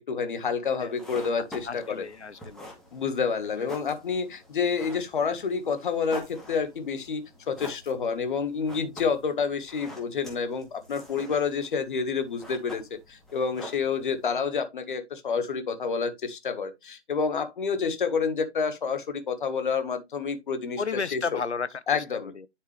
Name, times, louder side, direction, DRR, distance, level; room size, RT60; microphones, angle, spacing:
voice 1, 0.1-2.0 2.9-20.8 21.1-21.2 21.9-22.3, left 5 dB, 45° left, 1.7 m, -29 dB
sound 1, 0.8-14.4, equal, ahead, 1.4 m, -47 dB
voice 2, 1.6-2.7 3.4-3.7 20.8-22.5, left 5 dB, 75° left, 1.0 m, -34 dB
10.0 x 4.6 x 3.3 m
figure-of-eight pair, 140°, 34 cm